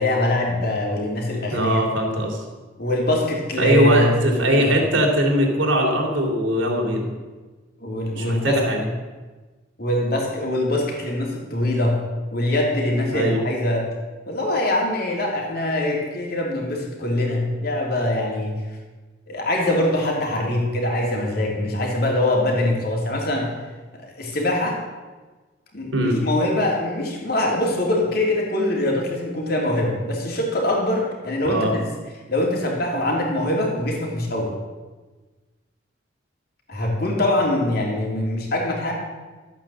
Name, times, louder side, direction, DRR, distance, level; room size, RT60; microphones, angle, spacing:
voice 1, 0.0-1.8 2.8-4.7 7.8-8.6 9.8-12.0 12.3-13.9 14.3-18.5 19.3-23.5 24.0-24.8 25.7-31.8 32.3-34.5 36.7-38.9, left 1 dB, 55° left, -1 dB, 3.2 m, -23 dB
voice 2, 1.5-2.4 3.6-7.1 8.2-8.8 13.1-13.4 25.9-26.2 31.4-31.7, equal, 90° right, 1 dB, 3.1 m, -21 dB
13.5 x 8.8 x 7.4 m, 1.3 s
head